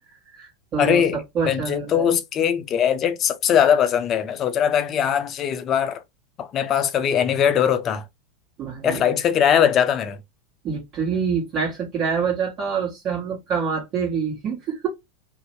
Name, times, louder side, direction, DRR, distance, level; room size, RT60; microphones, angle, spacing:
voice 1, 0.1-2.1 8.6-9.0 10.6-14.9, right 6 dB, 40° right, 1.1 m, -26 dB
voice 2, 0.8-1.2 1.4-6.0 6.4-8.0 8.8-10.2, left 8 dB, 40° left, 0.5 m, -20 dB
2.6 x 2.0 x 2.9 m
hypercardioid pair, 100°, 0 cm